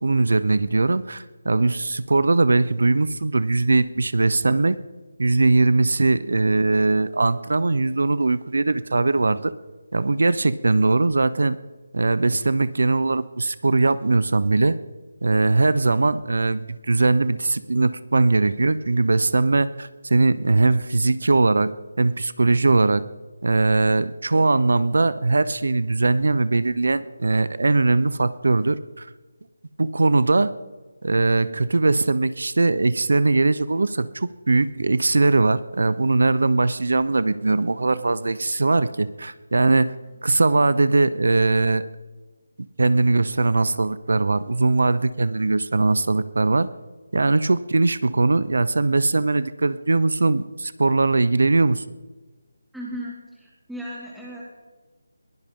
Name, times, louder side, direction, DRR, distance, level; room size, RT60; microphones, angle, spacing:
voice 1, 0.0-4.8 5.2-9.5 9.9-11.6 11.9-14.8 15.2-21.7 22.0-23.0 23.4-29.1 29.8-30.5 31.0-39.9 40.2-41.9 42.8-46.7 47.1-51.8, right 3 dB, 70° right, 16 dB, 0.7 m, -20 dB
voice 2, 52.7-54.4, equal, ahead, -6 dB, 2.3 m, -36 dB
21.5 x 15.5 x 3.8 m, 1.3 s
figure-of-eight pair, 170°, 0 cm